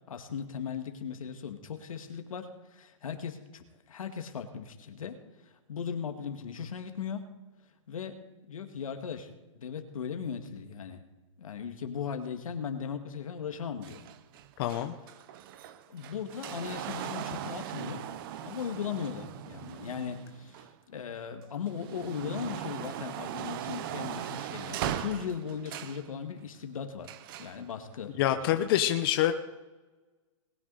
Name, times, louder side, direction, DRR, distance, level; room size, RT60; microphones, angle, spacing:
voice 1, 0.1-7.2 7.9-11.0 11.4-14.0 15.9-18.1 18.4-27.1 27.4-28.6, left 7 dB, 85° left, 6 dB, 1.9 m, -38 dB
sound 1, 13.8-21.0 21.5-26.1 27.0-27.6 28.5-28.6, right 11 dB, 40° right, 0.8 m, -39 dB
voice 2, 14.6-14.9 28.2-29.3, left 12 dB, 45° left, 7 dB, 0.9 m, -26 dB
20.5 x 9.6 x 4.1 m, 1.2 s
hypercardioid pair, 150°, 17 cm